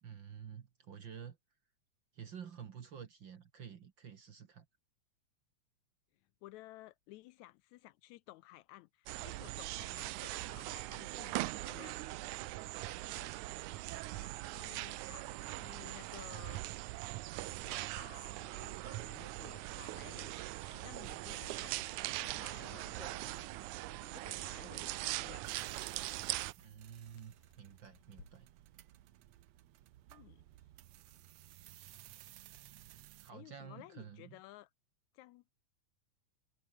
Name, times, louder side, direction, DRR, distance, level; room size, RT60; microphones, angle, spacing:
voice 1, 0.0-1.4 2.1-4.7 26.6-28.5 33.2-34.4, right 8 dB, 50° right, 1.6 m, -50 dB
voice 2, 6.4-12.0 12.8-13.3 14.2-16.6 17.5-23.5 23.9-25.5 30.1-30.4 33.3-34.7 35.1-35.6, left 18 dB, 80° left, 1.8 m, -56 dB
sound 1, 9.1-26.5, right 18 dB, 85° right, 2.1 m, -41 dB
sound 2, 21.4-28.4, left 5 dB, 60° left, 5.4 m, -64 dB
sound 3, 25.4-33.3, right 14 dB, 70° right, 2.0 m, -58 dB
omnidirectional pair, 3.5 m